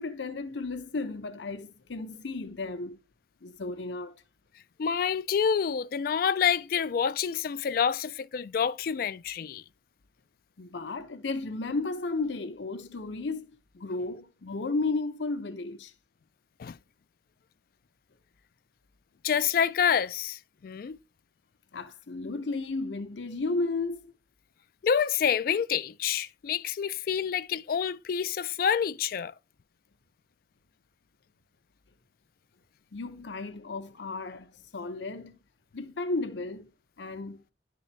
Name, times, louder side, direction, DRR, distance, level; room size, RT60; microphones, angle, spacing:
voice 1, 0.0-3.0 3.4-4.2 10.6-13.5 13.7-15.9 21.7-24.1 32.9-35.4 35.7-36.7 37.0-37.4, left 3 dB, 80° left, 0.7 m, -33 dB
voice 2, 4.8-9.6 16.6-16.8 19.2-21.0 24.8-29.3, left 7 dB, 50° left, 0.3 m, -27 dB
10.5 x 3.8 x 3.1 m
head